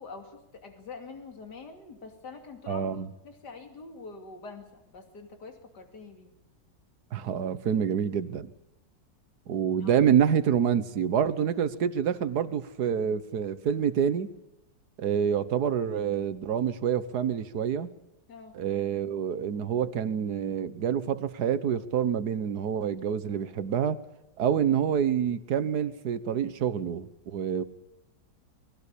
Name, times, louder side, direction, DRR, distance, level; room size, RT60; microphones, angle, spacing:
voice 1, 0.0-6.3 9.8-10.0 18.3-18.6, left 4 dB, 65° left, 5 dB, 3.2 m, -45 dB
voice 2, 2.7-3.1 7.1-8.5 9.5-14.3 15.0-17.9 18.5-24.0 24.4-27.6, right 8 dB, 65° right, 14 dB, 1.6 m, -27 dB
22.0 x 17.0 x 8.5 m, 0.93 s
omnidirectional pair, 1.9 m